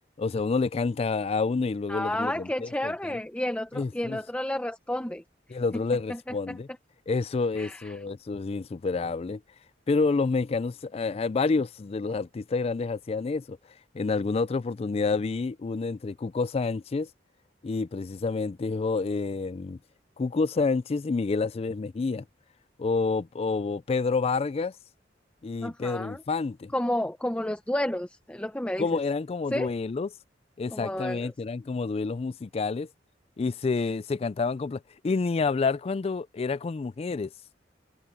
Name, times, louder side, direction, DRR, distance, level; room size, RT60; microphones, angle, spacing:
voice 1, 0.2-3.2 3.7-4.2 5.5-6.7 7.1-9.4 9.9-13.6 13.9-17.1 17.6-19.8 20.2-22.2 22.8-24.7 25.4-26.7 28.8-30.1 30.6-32.9 33.4-37.3, left 4 dB, 35° left, 0.3 m, -28 dB
voice 2, 1.9-5.2 5.7-5.8 6.1-6.6 7.6-7.9 25.6-26.2 26.7-29.0 29.5-29.7 30.7-31.3, left 1 dB, 5° left, 0.7 m, -31 dB
head